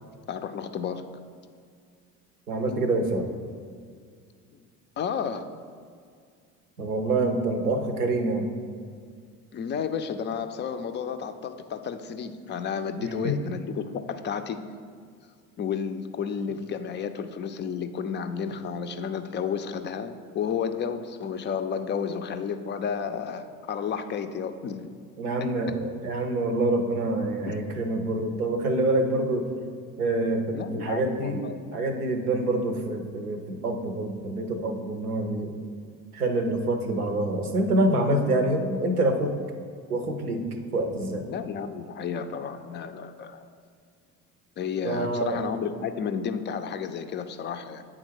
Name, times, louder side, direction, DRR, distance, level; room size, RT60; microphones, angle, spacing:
voice 1, 0.3-1.1 4.5-4.7 5.0-5.5 9.5-14.6 15.6-24.9 27.5-27.6 30.5-31.7 41.3-43.5 44.6-47.9, left 7 dB, 25° left, 9 dB, 0.4 m, -32 dB
voice 2, 2.5-3.3 6.8-8.5 13.0-13.4 25.2-29.5 30.0-31.4 31.7-35.6 36.1-39.3 39.9-40.4 40.7-41.3 44.8-45.4, right 2 dB, 90° right, 5 dB, 0.7 m, -26 dB
8.7 x 3.7 x 4.6 m, 2.1 s
figure-of-eight pair, 60°, 43 cm